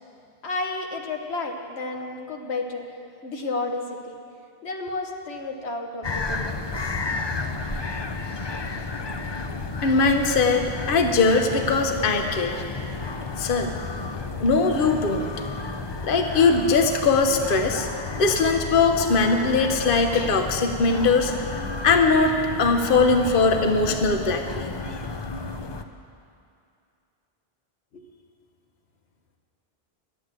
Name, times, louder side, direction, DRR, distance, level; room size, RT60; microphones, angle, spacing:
voice 1, 0.4-2.9 3.2-4.2 4.6-6.7 27.9-28.0, left 3 dB, 90° left, 3 dB, 1.3 m, -31 dB
sound 1, 6.0-25.8, left 3 dB, 35° left, 0.4 m, -32 dB
voice 2, 9.8-12.6 13.4-13.7 14.4-15.3 16.0-17.9 18.1-21.3 21.8-24.8, left 4 dB, 60° left, 5 dB, 0.9 m, -21 dB
11.5 x 8.1 x 8.8 m, 2.4 s
omnidirectional pair, 1.1 m